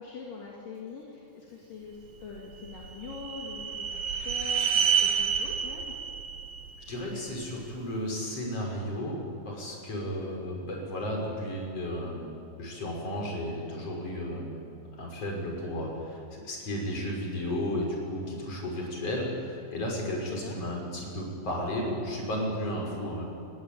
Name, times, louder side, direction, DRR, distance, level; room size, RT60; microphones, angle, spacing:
voice 1, 0.0-5.8 10.0-10.3 20.3-20.6, left 5 dB, 65° left, -2 dB, 4.2 m, -43 dB
sound 1, 2.4-7.6, right 7 dB, 60° right, 2.4 m, -29 dB
voice 2, 6.9-14.6 15.0-23.3, equal, 40° left, 0 dB, 6.8 m, -33 dB
29.5 x 20.5 x 9.0 m, 2.5 s
omnidirectional pair, 4.3 m